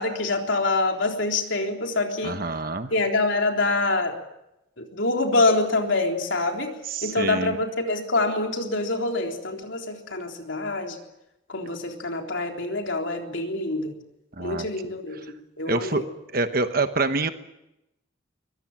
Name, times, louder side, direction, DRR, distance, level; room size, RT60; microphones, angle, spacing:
voice 1, 0.0-2.4 2.9-4.2 4.8-6.7 7.0-11.0 11.5-14.0 14.4-15.2 15.6-16.0, left 2 dB, 70° left, 2 dB, 3.7 m, -25 dB
voice 2, 2.2-2.9 6.9-7.6 14.4-14.7 15.7-16.0 16.3-17.3, right 3 dB, 45° right, 8 dB, 1.2 m, -26 dB
23.0 x 20.0 x 8.9 m, 0.89 s
head